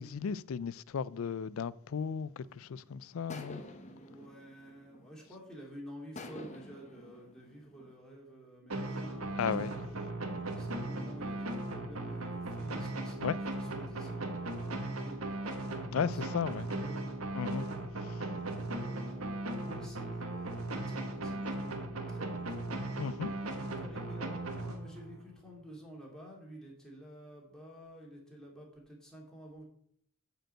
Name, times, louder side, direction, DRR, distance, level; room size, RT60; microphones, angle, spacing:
voice 1, 0.0-3.6 9.4-9.7 13.2-13.4 15.9-16.7 17.3-17.7 18.1-18.2 23.0-23.3, left 6 dB, 70° left, 0.4 m, -35 dB
sound 1, 2.4-2.7 3.3-5.4 6.1-7.9, left 2 dB, 35° left, 1.0 m, -49 dB
voice 2, 3.8-13.2 13.5-17.1 18.7-21.8 22.1-22.9 23.3-29.6, equal, 5° left, 2.7 m, -51 dB
sound 2, 8.7-25.2, right 2 dB, 85° right, 1.6 m, -37 dB
9.0 x 5.1 x 7.6 m
head